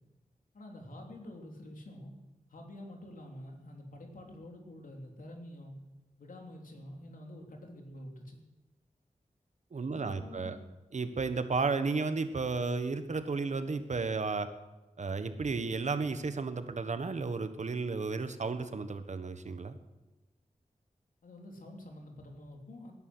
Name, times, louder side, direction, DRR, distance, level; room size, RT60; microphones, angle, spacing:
voice 1, 0.5-2.2 2.5-5.8 6.2-8.4 9.9-10.7 21.2-22.9, left 1 dB, 80° left, 1 dB, 3.4 m, -48 dB
voice 2, 9.7-10.6 10.9-14.5 15.0-19.8, right 4 dB, 60° right, 10 dB, 1.3 m, -33 dB
19.5 x 11.0 x 6.3 m, 1.1 s
wide cardioid pair, 100°, 14 cm